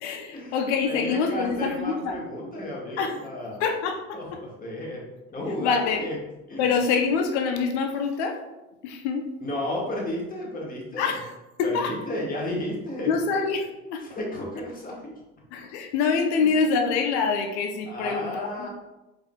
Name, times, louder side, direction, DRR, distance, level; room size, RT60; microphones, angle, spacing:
voice 1, 0.0-2.2 3.0-3.1 3.6-4.4 5.6-6.0 6.6-8.4 8.8-9.3 11.0-11.2 11.6-11.9 13.1-14.0 15.5-18.7, left 5 dB, 70° left, 5 dB, 0.6 m, -25 dB
voice 2, 0.9-3.6 4.1-5.0 5.3-6.2 6.5-6.7 9.4-11.1 11.6-13.1 14.0-15.0 16.4-16.5 17.9-18.7, left 1 dB, 25° left, -2 dB, 1.4 m, -33 dB
4.7 x 3.7 x 2.3 m, 1.0 s
hypercardioid pair, 70°, 35 cm